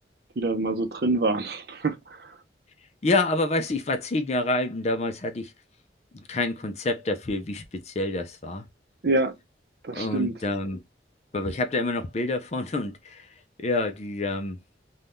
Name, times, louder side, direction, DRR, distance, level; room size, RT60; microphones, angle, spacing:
voice 1, 0.4-2.4 9.0-9.3 9.8-10.4, right 2 dB, 60° right, 0.6 m, -26 dB
voice 2, 3.0-5.5 6.1-8.6 9.9-10.8 11.3-13.3 13.6-14.6, left 2 dB, 35° left, 0.5 m, -27 dB
2.7 x 2.3 x 3.4 m
head